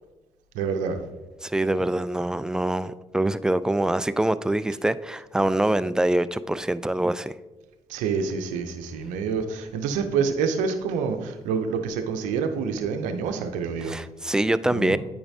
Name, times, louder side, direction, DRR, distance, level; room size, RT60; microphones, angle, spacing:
voice 1, 0.5-1.0 7.9-14.0 14.7-15.0, right 5 dB, 85° right, 0.6 m, -27 dB
voice 2, 1.4-7.3 13.8-15.0, right 1 dB, 5° right, 0.3 m, -24 dB
8.6 x 5.2 x 2.7 m
supercardioid pair, 55°, 13 cm